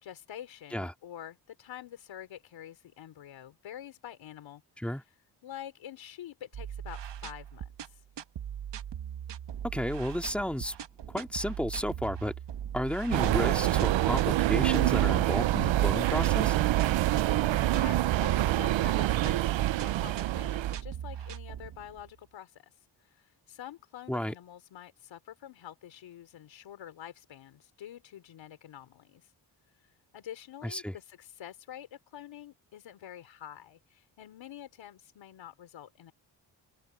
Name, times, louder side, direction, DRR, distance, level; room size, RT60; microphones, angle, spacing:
voice 1, 0.0-4.9 5.4-8.0 17.4-22.7 23.1-29.3 30.1-36.1, left 11 dB, 85° left, 3.7 m, -47 dB
sound 1, 6.5-22.1, right 9 dB, 70° right, 1.5 m, -40 dB
voice 2, 9.6-10.8 11.1-12.3 12.7-16.6 24.1-24.3 30.6-30.9, left 1 dB, 5° left, 2.5 m, -32 dB
sound 2, 13.1-20.8, right 15 dB, 85° right, 0.8 m, -26 dB
cardioid pair, 70°, 44 cm